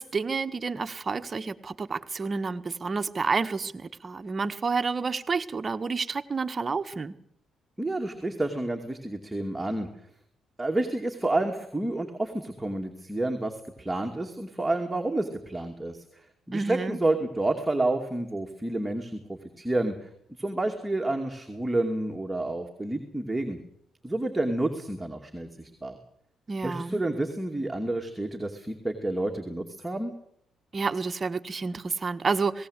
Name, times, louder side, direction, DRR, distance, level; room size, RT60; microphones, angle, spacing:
voice 1, 0.0-7.1 16.5-17.0 26.5-27.0 30.7-32.7, right 4 dB, 35° right, 9 dB, 1.4 m, -29 dB
voice 2, 7.8-9.9 10.6-20.1 20.4-23.6 24.0-26.0 26.6-30.1, right 2 dB, 10° right, 2 dB, 2.6 m, -29 dB
19.5 x 18.0 x 8.2 m, 0.72 s
cardioid pair, 90°, 0 cm